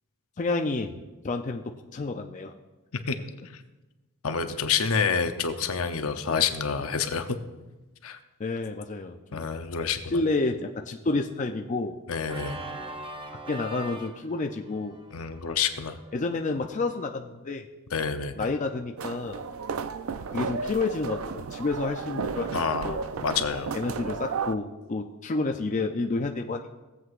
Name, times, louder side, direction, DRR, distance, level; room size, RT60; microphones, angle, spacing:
voice 1, 0.4-2.5 8.4-9.5 10.1-11.9 13.5-15.0 16.1-17.7 18.4-19.4 20.3-22.6 22.8-23.0 23.7-26.7, left 3 dB, 35° left, 3 dB, 0.5 m, -30 dB
voice 2, 4.2-7.4 8.0-8.2 9.3-10.2 12.1-12.6 15.1-16.0 17.9-18.5 22.5-23.7, left 6 dB, 70° left, 8 dB, 0.7 m, -28 dB
Organ, 12.2-17.1, right 1 dB, 25° right, 0.6 m, -42 dB
sound 1, 19.0-24.5, right 5 dB, 65° right, 0.4 m, -33 dB
18.0 x 7.8 x 2.5 m, 1.1 s
head